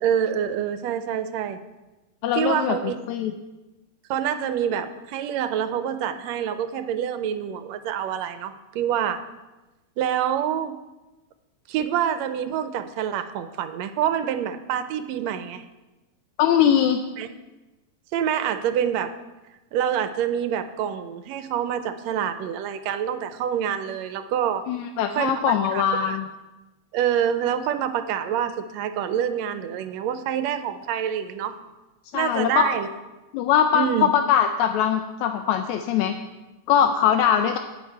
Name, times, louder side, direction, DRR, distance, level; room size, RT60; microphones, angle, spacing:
voice 1, 0.0-1.6 2.3-2.9 4.1-9.2 10.0-10.8 11.7-15.6 17.2-17.3 18.1-19.1 19.7-24.6 25.2-26.2 26.9-31.6 32.1-32.9 33.7-34.1, right 9 dB, 80° right, 10 dB, 1.7 m, -26 dB
voice 2, 2.2-2.8 3.1-3.3 16.4-17.0 24.7-26.3 32.1-32.7 33.3-36.2 36.7-37.6, left 9 dB, 80° left, 6 dB, 2.0 m, -21 dB
17.5 x 6.6 x 4.6 m, 1.1 s
omnidirectional pair, 3.3 m